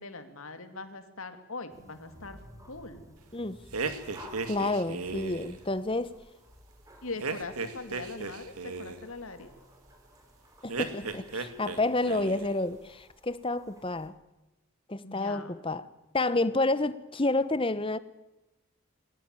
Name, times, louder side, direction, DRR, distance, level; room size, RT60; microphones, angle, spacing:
voice 1, 0.0-2.4 2.7-3.1 7.0-9.5 15.0-15.6, left 3 dB, 70° left, 2.5 m, -41 dB
sound 1, 1.7-14.1, equal, 15° right, 3.7 m, -54 dB
sound 2, 3.7-5.6 7.2-9.0 10.7-11.8 12.0-12.6, right 4 dB, 85° right, 2.2 m, -35 dB
voice 2, 4.5-6.2 8.2-8.3 10.6-14.1 14.9-15.9 16.1-18.0, left 2 dB, 25° left, 0.9 m, -29 dB
22.5 x 18.0 x 9.0 m
head